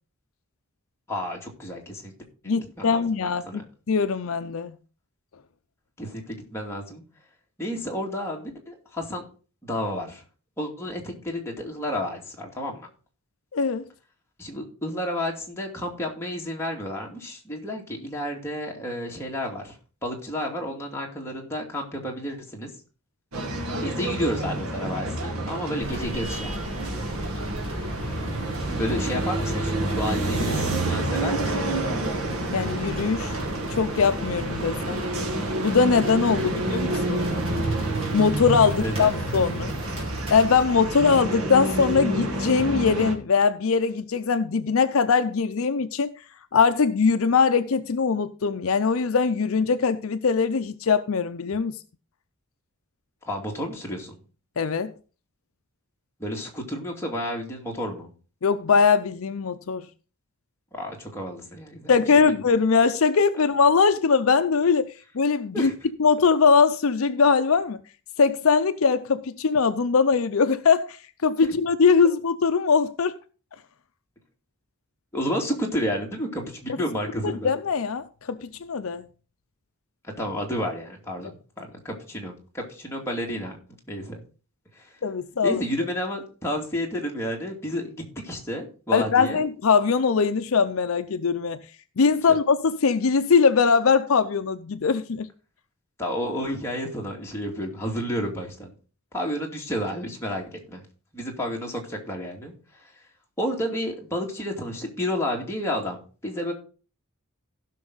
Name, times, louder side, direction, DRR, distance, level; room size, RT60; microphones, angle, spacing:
voice 1, 1.1-2.1 2.4-3.6 6.0-7.0 7.6-9.2 9.6-10.2 10.6-12.9 14.4-19.7 20.0-22.7 23.8-26.6 28.7-31.7 38.8-39.2 53.3-54.2 56.2-58.1 60.7-61.9 62.3-62.4 65.5-65.7 75.1-77.5 80.0-83.6 83.9-84.2 84.8-84.9 85.4-89.4 92.3-92.4 96.0-98.7 99.1-100.8 101.1-102.5 103.4-106.5, equal, 10° left, 2.4 m, -31 dB
voice 2, 2.5-3.6 3.9-4.8 13.5-13.9 32.5-33.4 33.7-35.0 35.6-37.3 38.1-39.7 40.3-46.1 46.5-51.8 54.6-54.9 58.4-59.9 61.9-65.7 66.0-67.8 68.2-71.0 71.2-73.1 77.2-79.1 85.0-85.6 88.9-91.6 92.0-95.3, left 5 dB, 65° left, 0.5 m, -21 dB
sound 1, 23.3-43.1, right 1 dB, 80° right, 1.8 m, -29 dB
sound 2, 25.8-41.1, right 1 dB, 25° right, 3.9 m, -37 dB
16.0 x 6.0 x 4.0 m
head